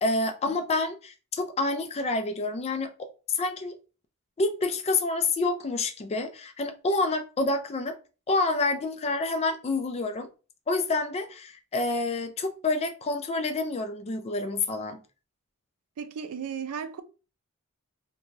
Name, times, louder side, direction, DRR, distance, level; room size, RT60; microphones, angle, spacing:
voice 1, 0.0-3.7 4.4-8.0 8.3-10.3 10.7-15.0, left 3 dB, 30° left, 0.4 m, -28 dB
voice 2, 16.0-17.0, right 7 dB, 85° right, 0.4 m, -35 dB
3.1 x 2.2 x 2.5 m
head